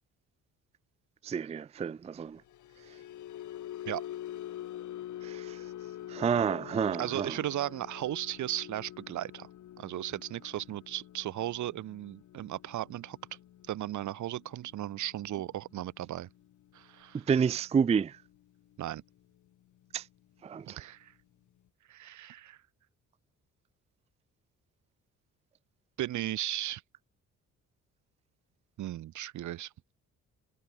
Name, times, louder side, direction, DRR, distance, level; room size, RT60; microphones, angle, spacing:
voice 1, 1.2-2.4 5.2-5.6 6.1-7.4 17.1-18.2 19.9-20.1 20.4-20.8, right 6 dB, 20° right, 0.4 m, -29 dB
sound 1, 2.3-18.7 19.1-19.4 19.7-19.9, left 12 dB, 75° left, 4.4 m, -46 dB
voice 2, 7.0-9.5 9.8-13.2 13.7-16.3 16.7-17.3 18.8-19.0 20.7-21.1 21.9-22.6 26.0-26.8 28.8-29.7, right 13 dB, 75° right, 1.4 m, -36 dB
cardioid pair, 90°, 30 cm